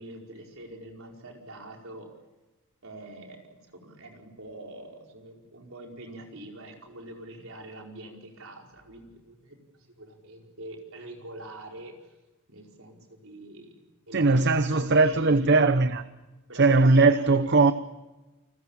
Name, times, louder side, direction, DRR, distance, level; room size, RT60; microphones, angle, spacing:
voice 1, 0.0-2.1 2.8-12.1 12.5-15.8 16.5-17.3, right 1 dB, 65° right, 5.1 m, -45 dB
voice 2, 14.1-16.0 16.5-17.7, right 3 dB, 50° right, 0.8 m, -20 dB
29.0 x 21.0 x 7.5 m
head